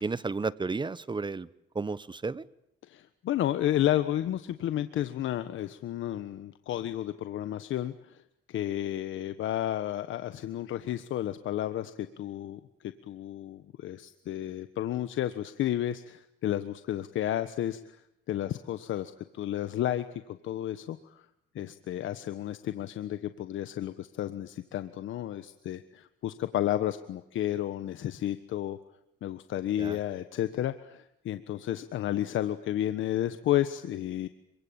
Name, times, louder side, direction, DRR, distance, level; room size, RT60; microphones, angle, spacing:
voice 1, 0.0-1.5 1.7-2.4 29.8-30.0, right 4 dB, 25° right, 18 dB, 1.1 m, -32 dB
voice 2, 2.8-8.2 8.5-18.0 18.3-21.2 21.5-28.8 29.2-34.3, left 12 dB, 80° left, 11 dB, 1.3 m, -32 dB
26.5 x 24.0 x 8.8 m, 0.80 s
cardioid pair, 90°, 20 cm